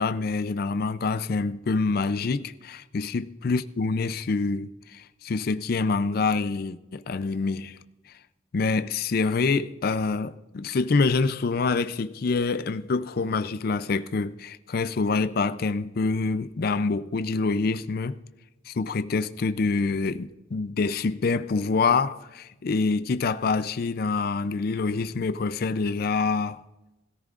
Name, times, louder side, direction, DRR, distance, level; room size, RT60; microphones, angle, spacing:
voice 1, 0.0-7.8 8.5-18.2 18.7-26.6, left 4 dB, 50° left, 0.4 m, -26 dB
20.5 x 14.0 x 2.5 m
head